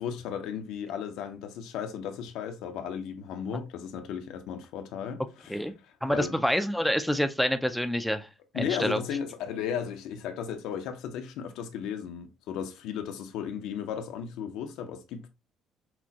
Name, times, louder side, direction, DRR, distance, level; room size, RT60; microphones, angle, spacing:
voice 1, 0.0-5.6 6.1-6.3 8.5-15.3, left 8 dB, 85° left, 0.7 m, -35 dB
voice 2, 6.0-8.3 8.5-9.0, equal, ahead, 0.4 m, -27 dB
5.9 x 2.2 x 2.8 m
cardioid pair, 165°, 0 cm